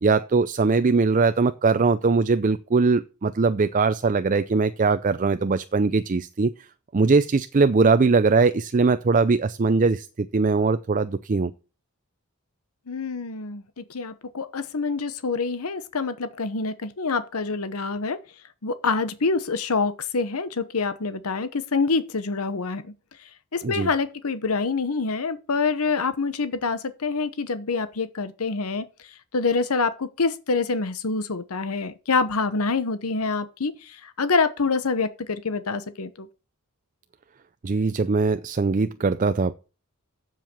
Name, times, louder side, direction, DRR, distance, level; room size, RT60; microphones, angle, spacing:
voice 1, 0.0-6.5 6.9-11.5 23.6-23.9 37.6-39.5, right 4 dB, 35° right, 0.4 m, -21 dB
voice 2, 12.9-18.2 18.6-22.9 23.5-28.8 29.3-36.3, left 4 dB, 85° left, 0.9 m, -26 dB
7.6 x 7.4 x 6.7 m
head